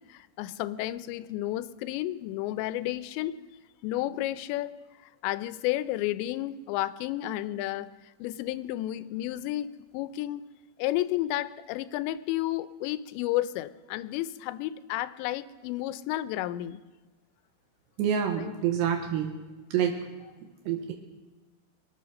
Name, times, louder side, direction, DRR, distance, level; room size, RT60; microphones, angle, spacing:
voice 1, 0.1-3.4 3.8-4.7 5.0-7.9 8.2-10.4 10.8-16.8 18.4-18.6, left 15 dB, 90° left, 14 dB, 2.9 m, -32 dB
voice 2, 18.0-19.3 19.7-20.0 20.7-20.9, right 8 dB, 80° right, 2 dB, 3.2 m, -27 dB
23.0 x 8.5 x 6.4 m, 1.2 s
omnidirectional pair, 5.0 m